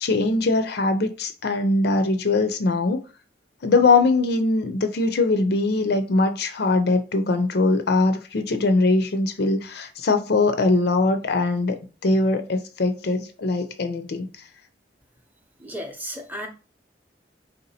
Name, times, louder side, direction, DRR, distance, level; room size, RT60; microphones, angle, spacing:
voice 1, 0.0-3.0 3.6-14.3, left 3 dB, 60° left, 0.5 m, -21 dB
voice 2, 15.6-16.5, equal, 10° right, 0.7 m, -34 dB
3.5 x 2.7 x 4.1 m
head